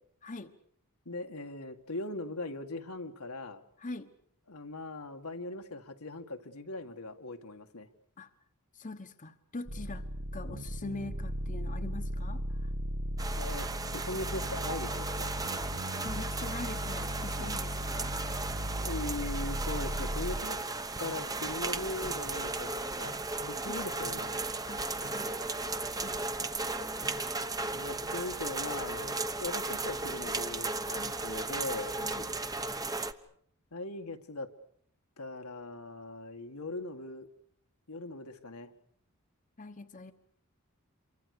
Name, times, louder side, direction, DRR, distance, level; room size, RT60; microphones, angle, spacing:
voice 1, 1.1-3.6 4.5-7.9 13.3-15.3 17.4-17.5 18.8-20.6 21.0-22.7 23.0-24.5 27.7-31.9 33.7-34.5 35.2-37.3 37.9-38.7, left 2 dB, 80° left, 5 dB, 2.0 m, -40 dB
voice 2, 3.8-4.1 8.2-8.3 8.7-10.0 10.3-12.7 15.6-15.7 16.0-18.4 23.7-23.8 24.7-25.4 25.9-26.5 26.9-27.1 30.9-31.1 32.0-32.3 39.6-40.1, left 2 dB, 35° left, 8 dB, 1.2 m, -43 dB
Juno Bass, 9.7-20.4, equal, 85° right, 2.0 m, -36 dB
sound 1, 13.2-33.1, right 3 dB, 15° right, 1.0 m, -36 dB
Tick-tock, 17.6-32.9, equal, 55° right, 2.3 m, -53 dB
28.0 x 24.0 x 6.8 m, 0.64 s
head